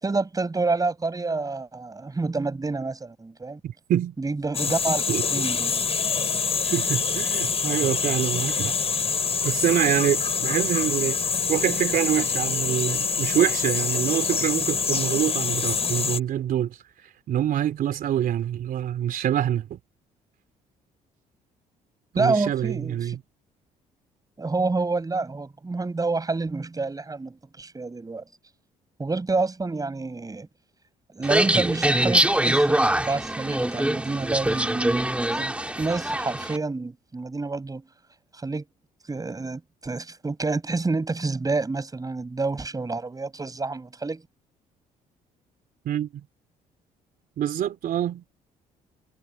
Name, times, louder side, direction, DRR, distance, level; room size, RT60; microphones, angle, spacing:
voice 1, 0.0-3.6 4.2-5.0 5.3-5.8 22.2-23.2 24.4-28.2 29.0-30.5 31.1-35.1 35.3-37.8 38.3-38.6 39.1-44.2, right 3 dB, 25° right, 6.0 m, -28 dB
voice 2, 3.6-4.2 5.1-5.5 6.6-8.7 9.4-11.2 11.5-16.8 17.3-19.8 22.1-23.2 45.9-46.2 47.4-48.2, right 11 dB, 65° right, 3.7 m, -26 dB
sound 1, 4.5-16.2, left 5 dB, 40° left, 6.0 m, -26 dB
sound 2, 31.2-36.6, right 1 dB, 10° right, 2.6 m, -23 dB
supercardioid pair, 70°, 16 cm